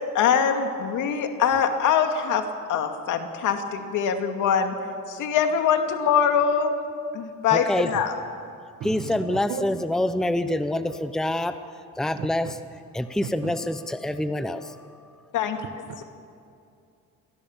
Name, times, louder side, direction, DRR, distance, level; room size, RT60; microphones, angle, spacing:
voice 1, 0.1-4.7 5.1-6.7 7.1-8.1 15.3-15.6 16.0-16.1, left 7 dB, 70° left, 5 dB, 2.4 m, -23 dB
voice 2, 7.5-7.9 8.8-11.6 12.0-12.6 12.9-14.8, left 1 dB, ahead, 10 dB, 0.8 m, -26 dB
voice 3, 12.2-12.5 13.4-13.5, right 9 dB, 55° right, 9 dB, 1.7 m, -34 dB
27.0 x 18.0 x 7.3 m, 2.4 s
cardioid pair, 110°, 32 cm